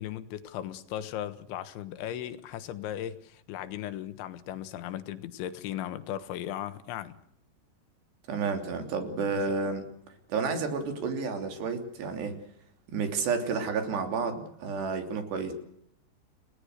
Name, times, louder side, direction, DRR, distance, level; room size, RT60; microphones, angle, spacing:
voice 1, 0.0-7.2 9.3-9.4, left 11 dB, 85° left, 12 dB, 3.7 m, -37 dB
voice 2, 8.3-9.8 10.3-12.4 12.9-15.5, right 5 dB, 70° right, 6 dB, 5.2 m, -31 dB
29.5 x 19.0 x 6.6 m, 0.71 s
omnidirectional pair, 5.2 m